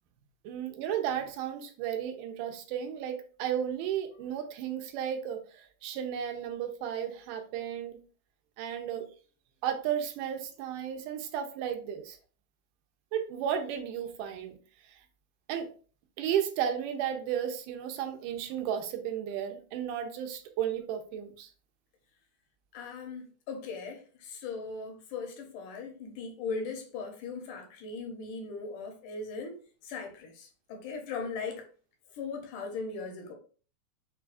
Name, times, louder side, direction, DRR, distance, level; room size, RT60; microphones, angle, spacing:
voice 1, 0.5-5.4 5.8-8.0 8.6-9.1 9.6-12.2 13.1-14.6 15.5-15.7 16.2-21.5, right 9 dB, 85° right, 2.2 m, -33 dB
voice 2, 22.7-31.6 32.1-33.3, left 4 dB, 80° left, 2.3 m, -39 dB
6.0 x 2.3 x 2.4 m
omnidirectional pair, 3.7 m